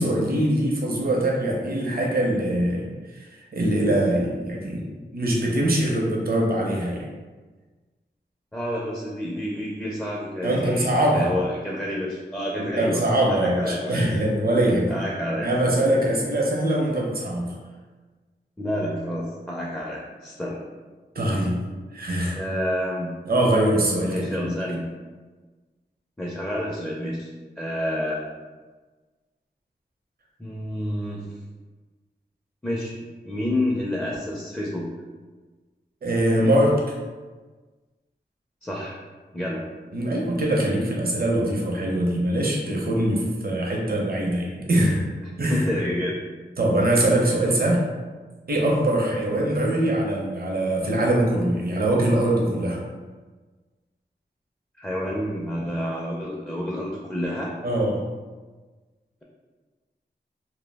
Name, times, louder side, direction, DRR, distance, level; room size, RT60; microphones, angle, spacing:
voice 1, 0.0-4.8 5.1-7.1 10.4-11.3 12.6-15.0 15.4-17.5 21.1-21.6 21.9-22.4 23.3-24.5 36.0-36.8 39.9-45.0 45.4-45.6 46.6-47.8 48.5-52.8 57.6-58.0, right 1 dB, 55° right, -2 dB, 0.6 m, -23 dB
voice 2, 8.5-14.1 14.9-15.6 18.6-20.6 22.3-23.1 24.1-24.8 26.2-27.3 27.6-28.2 30.4-31.3 32.6-32.9 33.2-34.9 38.6-39.0 39.3-39.6 45.5-46.2 49.2-49.3 54.8-57.5, left 1 dB, 10° left, -4 dB, 0.4 m, -29 dB
2.2 x 2.0 x 3.3 m, 1.3 s
wide cardioid pair, 60°, 18 cm